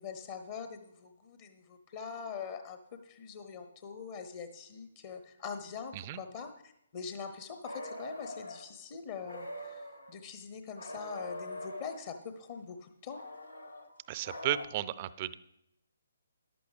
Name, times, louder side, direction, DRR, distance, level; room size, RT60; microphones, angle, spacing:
voice 1, 0.0-13.2, left 6 dB, 35° left, 7 dB, 0.8 m, -43 dB
sound 1, 7.6-8.6 9.2-10.1 10.8-12.0 13.1-14.7, left 1 dB, 85° left, 1.6 m, -43 dB
voice 2, 14.1-15.4, right 13 dB, 30° right, 16 dB, 0.5 m, -34 dB
14.0 x 11.5 x 3.4 m, 0.83 s
figure-of-eight pair, 135°, 0 cm